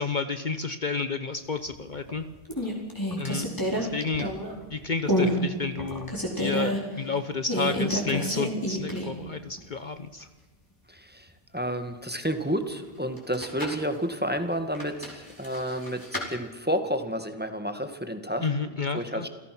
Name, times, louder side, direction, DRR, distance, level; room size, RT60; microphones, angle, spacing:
voice 1, 0.0-2.2 3.2-3.5 3.7-4.3 4.7-10.3 18.4-19.3, left 4 dB, 50° left, 10 dB, 1.0 m, -31 dB
sound 1, 1.7-2.1 2.5-4.6 5.1-5.4 5.8-6.8 7.5-9.3 9.6-9.7 13.2-13.8 14.7-16.3, equal, 20° left, 4.7 m, -29 dB
voice 2, 10.9-11.3 11.5-18.5 18.9-19.3, equal, 10° right, 7 dB, 1.9 m, -30 dB
28.5 x 16.5 x 6.1 m, 1.3 s
omnidirectional pair, 1.1 m